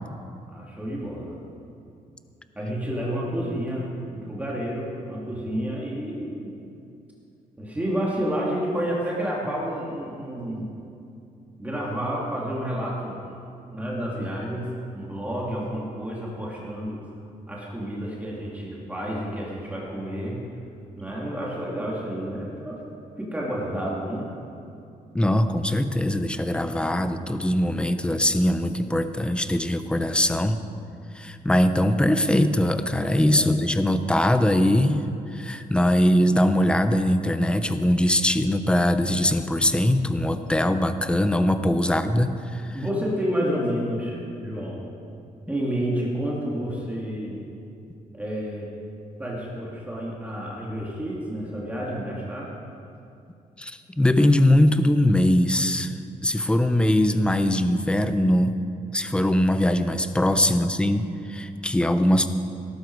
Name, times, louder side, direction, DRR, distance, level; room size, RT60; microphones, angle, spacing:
voice 1, 0.5-1.3 2.5-6.5 7.6-10.7 11.6-13.2 13.7-14.7 14.9-17.0 17.5-20.4 21.0-22.8 23.2-24.3 33.4-33.6 41.8-42.0 42.7-44.9 45.5-47.4 48.1-48.7 49.2-52.5, equal, 10° right, -5 dB, 2.6 m, -30 dB
voice 2, 25.1-30.6 31.1-35.1 35.3-42.8 53.6-55.9 56.2-58.6 58.9-62.3, left 1 dB, 5° left, 9 dB, 0.7 m, -21 dB
18.5 x 12.0 x 4.8 m, 2.6 s
cardioid pair, 135°, 15 cm